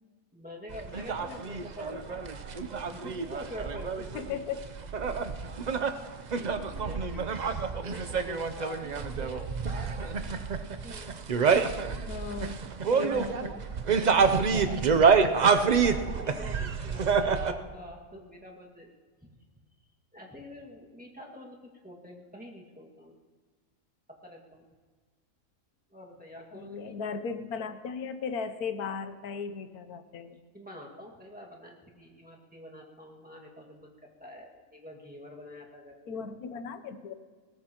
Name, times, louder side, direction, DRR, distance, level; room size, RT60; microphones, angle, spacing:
voice 1, 0.3-2.5 2.8-4.1 6.3-7.1 7.8-10.5 10.8-11.2 13.9-18.9 19.2-19.4 20.1-21.6 21.8-23.2 24.2-24.6 25.9-27.0 30.5-36.2, left 1 dB, 5° right, -2 dB, 1.9 m, -46 dB
sound 1, 0.7-17.5, right 5 dB, 70° right, 0.4 m, -27 dB
voice 2, 4.1-4.6 7.1-7.3 12.1-12.6 12.9-13.7 26.5-30.4 36.1-37.1, left 6 dB, 70° left, 10 dB, 1.3 m, -36 dB
21.0 x 18.0 x 3.0 m, 1.5 s
omnidirectional pair, 1.7 m